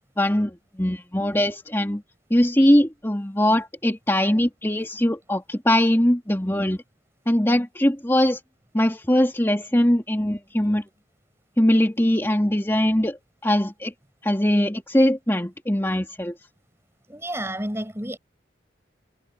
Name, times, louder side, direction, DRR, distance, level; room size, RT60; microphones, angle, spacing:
voice 1, 0.2-2.0 2.3-6.8 7.3-8.4 8.7-10.8 11.6-13.9 14.2-16.3, left 1 dB, 10° left, 2.5 m, -21 dB
voice 2, 17.1-18.2, right 1 dB, 15° right, 5.9 m, -30 dB
head